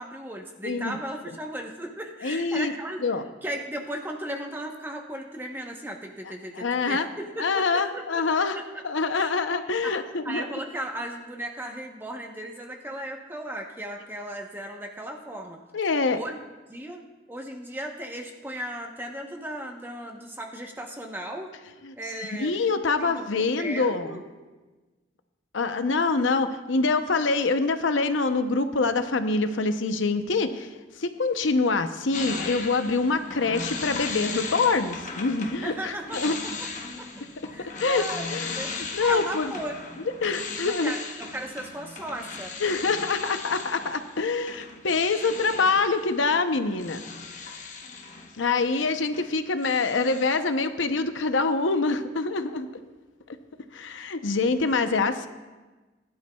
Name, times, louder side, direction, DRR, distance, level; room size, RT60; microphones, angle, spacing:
voice 1, 0.0-3.0 3.4-8.7 9.1-9.3 9.8-9.9 10.2-15.6 16.1-16.4 16.7-21.5 22.0-22.5 23.0-24.2 35.6-37.1 37.5-38.7 39.0-39.8 40.6-42.5, right 1 dB, 10° right, 2 dB, 0.9 m, -36 dB
voice 2, 2.2-2.7 3.0-3.2 6.6-7.1 7.4-8.6 8.8-10.4 15.7-16.2 21.8-21.9 22.3-24.2 25.5-30.7 31.0-36.4 37.8-38.6 38.9-39.5 40.2-40.9 42.6-47.0 48.4-52.7 53.7-55.3, left 4 dB, 80° left, 9 dB, 0.7 m, -25 dB
sound 1, 32.1-49.3 49.6-50.4, left 4 dB, 40° left, 1.0 m, -37 dB
19.5 x 11.0 x 2.3 m, 1.2 s
head